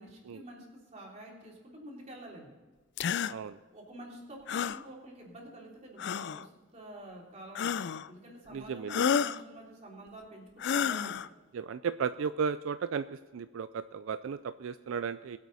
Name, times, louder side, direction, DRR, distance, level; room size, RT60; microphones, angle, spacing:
voice 1, 0.0-2.5 3.7-7.7 8.1-11.2, right 1 dB, 35° right, -2 dB, 3.4 m, -48 dB
sound 1, 3.0-3.3 4.5-4.8 6.0-6.4 7.6-8.1 8.9-9.4 10.6-11.3, left 7 dB, 55° left, 0.4 m, -30 dB
voice 2, 3.3-3.6 8.5-9.0 11.5-15.4, right 6 dB, 75° right, 12 dB, 0.4 m, -35 dB
21.5 x 8.2 x 4.2 m, 1.4 s
head